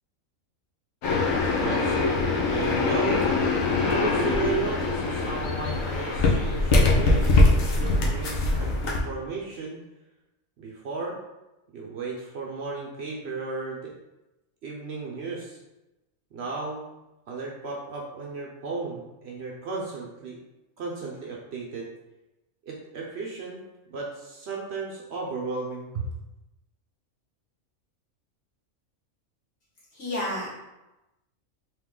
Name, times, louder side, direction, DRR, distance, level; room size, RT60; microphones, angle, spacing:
sound 1, 1.0-9.0, left 2 dB, 75° left, 1.1 m, -23 dB
voice 1, 1.5-2.1 2.4-3.2 3.7-9.8 10.6-11.2 11.7-13.9 14.6-15.6 16.3-16.8 17.3-20.4 20.8-21.9 22.7-23.6 23.9-26.0, right 4 dB, 60° right, -2 dB, 0.8 m, -34 dB
voice 2, 29.9-30.5, left 1 dB, 60° left, -8 dB, 1.9 m, -30 dB
3.5 x 2.8 x 3.6 m, 1.0 s
omnidirectional pair, 1.4 m